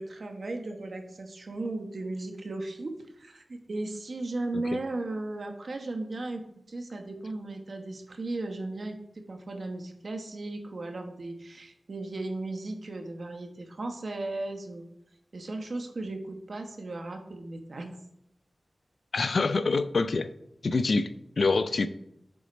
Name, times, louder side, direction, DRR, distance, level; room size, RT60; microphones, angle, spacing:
voice 1, 0.0-6.4 6.7-14.8 15.3-18.0, right 2 dB, 65° right, 4 dB, 1.0 m, -36 dB
voice 2, 19.1-20.3 20.6-21.1 21.4-21.9, left 3 dB, 70° left, 13 dB, 0.4 m, -25 dB
7.0 x 4.3 x 5.2 m, 0.77 s
wide cardioid pair, 60°, 0 cm